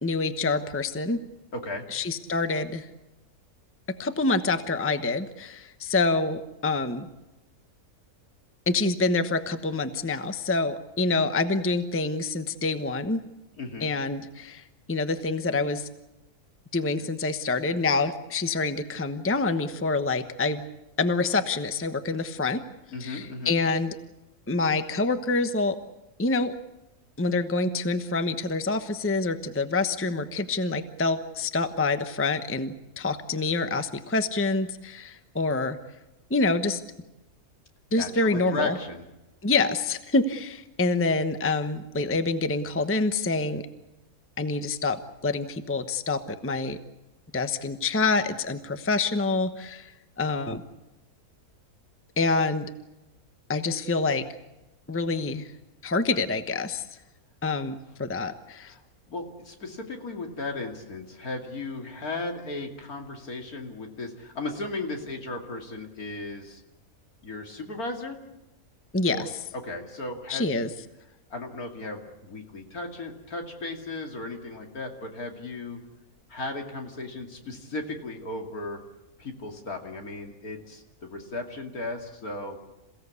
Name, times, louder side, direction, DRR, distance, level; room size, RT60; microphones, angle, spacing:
voice 1, 0.0-1.2 1.9-2.9 3.9-7.1 8.7-13.2 13.8-14.6 14.9-15.9 16.7-20.6 21.0-22.6 23.0-24.0 24.5-25.8 26.2-26.5 27.2-35.8 36.3-36.8 37.9-38.8 39.4-43.6 44.4-46.8 47.3-49.9 50.2-50.6 52.2-52.7 53.5-54.2 54.9-55.5 55.8-56.8 57.4-58.7 68.9-69.3 70.3-70.7, left 3 dB, 10° left, 9 dB, 0.9 m, -26 dB
voice 2, 1.5-1.8 13.5-13.9 22.9-23.5 37.9-39.0 58.6-58.8 59.1-66.6 67.2-68.2 69.1-70.6 71.3-75.8 76.3-78.8 79.2-82.6, left 2 dB, 70° left, 3 dB, 3.0 m, -36 dB
27.5 x 16.5 x 8.3 m, 0.99 s
omnidirectional pair, 1.6 m